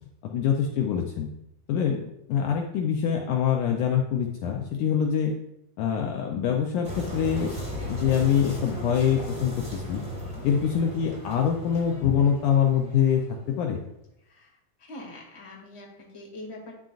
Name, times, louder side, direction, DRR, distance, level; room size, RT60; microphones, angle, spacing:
voice 1, 0.2-1.3 1.7-5.3 5.8-7.6 7.9-10.0 10.4-13.2 13.5-13.8, left 8 dB, 80° left, 2 dB, 1.8 m, -24 dB
sound 1, 6.8-13.4, equal, 5° right, 1.5 m, -36 dB
voice 2, 10.1-10.5 14.2-14.5 14.9-16.7, left 1 dB, 15° left, -2 dB, 0.9 m, -43 dB
10.5 x 7.6 x 2.5 m, 0.83 s
omnidirectional pair, 4.3 m